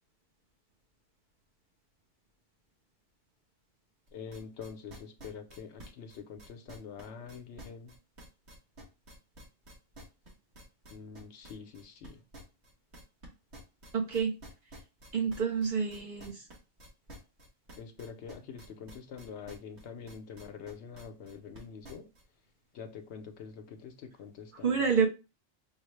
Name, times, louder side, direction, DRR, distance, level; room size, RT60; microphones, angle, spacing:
voice 1, 4.1-7.9 10.9-12.2 17.8-22.1 22.7-24.9, left 6 dB, 70° left, 0.9 m, -45 dB
sound 1, 4.1-22.2, equal, 70° right, 1.5 m, -50 dB
voice 2, 13.9-14.3 15.1-16.3 24.6-25.1, right 6 dB, 50° right, 0.7 m, -28 dB
5.5 x 2.0 x 3.2 m
omnidirectional pair, 1.2 m